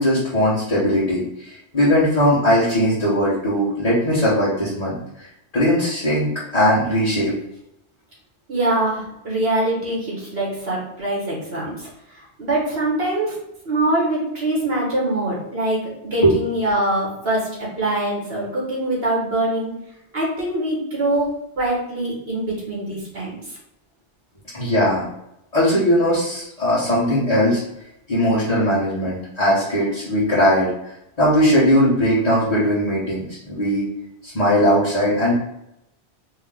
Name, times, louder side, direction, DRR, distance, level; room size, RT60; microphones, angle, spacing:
voice 1, 0.0-5.3 5.5-7.3 16.2-16.4 24.5-25.0 25.5-27.6 28.1-30.7 31.2-33.8 34.2-35.3, equal, 40° left, -10 dB, 1.4 m, -19 dB
voice 2, 8.5-13.3 13.6-19.7 20.1-23.6, right 1 dB, 65° right, -4 dB, 2.0 m, -23 dB
4.4 x 3.0 x 3.8 m, 0.82 s
omnidirectional pair, 1.1 m